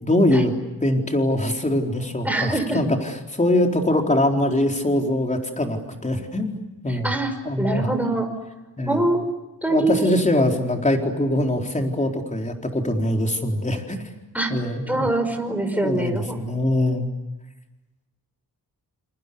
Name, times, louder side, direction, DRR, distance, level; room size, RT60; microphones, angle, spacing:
voice 1, 0.0-0.5 0.8-7.1 7.5-7.9 8.8-9.0 9.7-14.0 14.5-15.1 15.8-17.1, left 1 dB, 20° left, 3 dB, 4.3 m, -23 dB
voice 2, 2.2-2.8 6.9-8.3 8.9-9.3 9.6-10.1 14.3-14.5 14.9-16.4, right 2 dB, 5° right, 5 dB, 5.4 m, -24 dB
29.0 x 28.5 x 7.0 m, 1.1 s
wide cardioid pair, 130°, 37 cm